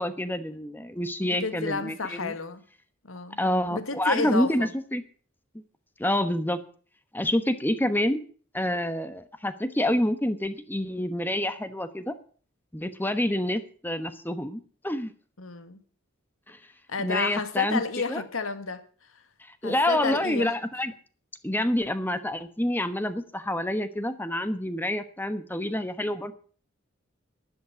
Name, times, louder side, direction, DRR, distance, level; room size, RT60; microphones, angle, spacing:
voice 1, 0.0-2.3 3.4-5.0 6.0-6.6 7.1-8.2 8.5-12.1 12.7-15.1 16.5-16.6 17.0-17.8 18.1-18.2 19.4-20.9 21.4-26.3, left 1 dB, 10° left, 1.1 m, -27 dB
voice 2, 1.2-2.6 3.0-3.4 3.7-4.7 15.4-15.8 16.9-18.8 19.6-20.5, left 3 dB, 90° left, 1.8 m, -31 dB
12.0 x 11.0 x 7.0 m
head